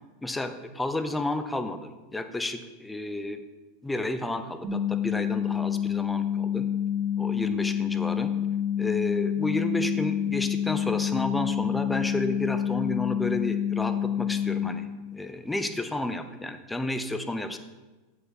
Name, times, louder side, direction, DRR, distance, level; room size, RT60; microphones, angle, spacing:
voice 1, 0.2-3.4 3.8-6.6 7.2-8.3 8.8-14.9 15.1-17.6, left 1 dB, 10° left, 8 dB, 0.7 m, -31 dB
sound 1, 4.6-14.6, left 9 dB, 35° right, 2.6 m, -28 dB
7.9 x 7.1 x 4.2 m, 1.2 s
hypercardioid pair, 105°, 0 cm